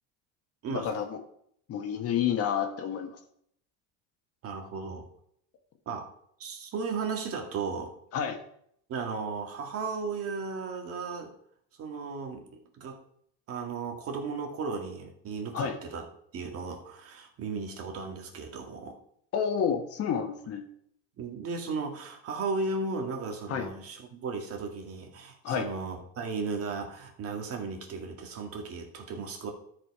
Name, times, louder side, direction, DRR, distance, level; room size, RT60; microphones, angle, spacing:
voice 1, 0.7-1.2 1.7-3.2 8.1-8.4 15.5-15.8 19.3-20.6 23.5-23.7 25.4-25.7, left 7 dB, 50° left, 6 dB, 1.6 m, -29 dB
voice 2, 4.4-5.1 5.9-6.1 6.4-7.9 8.9-11.3 11.8-12.5 12.8-13.0 13.5-16.1 16.3-19.0 21.2-29.5, right 4 dB, 45° right, 3 dB, 2.0 m, -35 dB
13.0 x 5.0 x 4.8 m, 0.68 s
cardioid pair, 120°, 31 cm